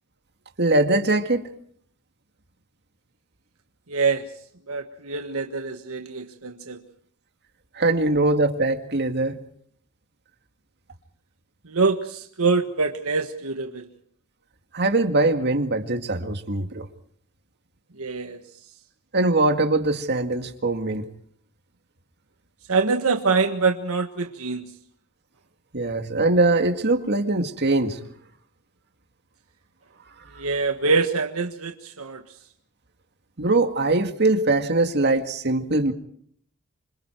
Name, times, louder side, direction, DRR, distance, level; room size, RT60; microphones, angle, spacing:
voice 1, 0.6-1.5 7.8-9.4 14.7-16.9 19.1-21.0 25.7-28.0 33.4-35.9, right 2 dB, 50° right, 6 dB, 2.1 m, -22 dB
voice 2, 3.9-4.2 4.7-6.8 11.7-13.8 18.0-18.4 22.7-24.7 30.4-32.2, right 4 dB, 75° right, 6 dB, 1.5 m, -24 dB
27.0 x 26.0 x 4.6 m, 0.62 s
head